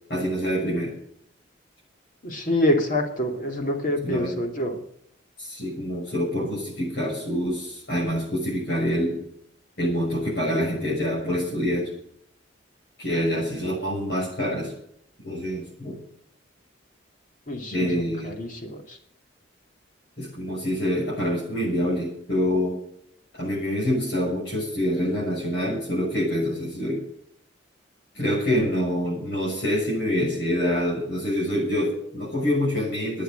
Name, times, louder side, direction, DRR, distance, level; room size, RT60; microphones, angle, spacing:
voice 1, 0.1-0.9 4.0-4.3 5.4-9.2 9.8-11.9 13.0-14.7 15.2-16.0 17.7-18.3 20.2-22.8 23.4-27.0 28.1-33.2, equal, 60° left, -7 dB, 6.7 m, -26 dB
voice 2, 2.2-4.8 17.5-19.0, left 1 dB, 45° left, 3 dB, 2.7 m, -26 dB
13.0 x 9.4 x 9.0 m, 0.70 s
head